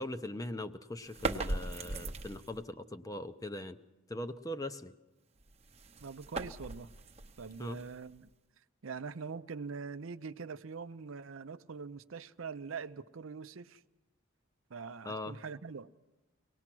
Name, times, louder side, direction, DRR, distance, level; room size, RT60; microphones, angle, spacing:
voice 1, 0.0-3.8 4.1-4.9 7.6-7.8 15.1-15.4, left 1 dB, 15° left, 0.6 m, -40 dB
sound 1, 1.0-2.6 5.4-8.3, right 2 dB, 30° right, 0.8 m, -39 dB
voice 2, 6.0-6.9 7.4-8.3 8.8-13.8 14.7-15.9, right 5 dB, 75° right, 0.6 m, -43 dB
24.0 x 18.5 x 6.1 m
head